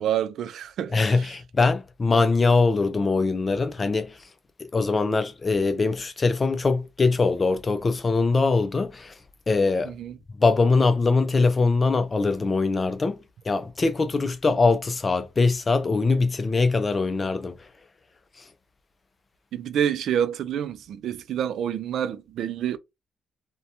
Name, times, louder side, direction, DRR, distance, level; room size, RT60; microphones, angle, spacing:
voice 1, 0.0-1.4 9.9-10.2 19.5-22.8, right 9 dB, 70° right, 0.3 m, -28 dB
voice 2, 0.9-4.2 4.7-9.1 9.5-9.9 10.4-13.2 13.5-17.6, left 3 dB, 30° left, 0.4 m, -22 dB
2.7 x 2.2 x 2.4 m
cardioid pair, 90°, 0 cm